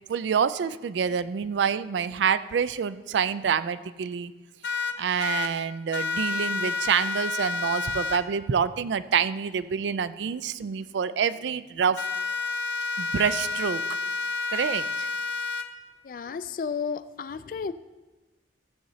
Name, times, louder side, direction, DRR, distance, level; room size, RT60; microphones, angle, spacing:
voice 1, 0.1-4.3 5.0-12.0 13.0-13.8 14.5-15.1, right 7 dB, 80° right, 15 dB, 0.3 m, -27 dB
sound 1, 4.6-5.5 5.9-8.2 12.0-15.6, left 4 dB, 75° left, 0.7 m, -29 dB
voice 2, 16.0-17.7, left 5 dB, 50° left, 14 dB, 0.3 m, -32 dB
15.5 x 7.7 x 2.8 m, 1.2 s
head